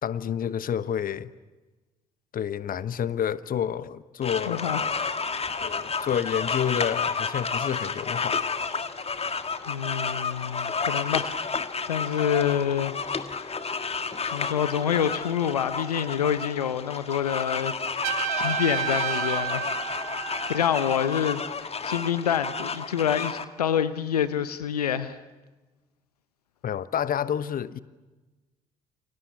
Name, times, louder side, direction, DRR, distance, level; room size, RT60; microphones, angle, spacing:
voice 1, 0.0-1.3 2.3-5.1 5.6-8.5 26.6-27.8, left 9 dB, 45° left, 1.1 m, -29 dB
sound 1, 4.2-23.4, left 5 dB, 30° left, 1.9 m, -31 dB
voice 2, 4.5-4.8 9.7-11.4 11.9-12.9 13.2-13.5 14.3-19.8 20.5-25.2, left 9 dB, 85° left, 0.8 m, -27 dB
Trumpet, 18.0-20.9, right 12 dB, 75° right, 1.2 m, -31 dB
29.0 x 27.5 x 7.1 m
figure-of-eight pair, 45°, 19 cm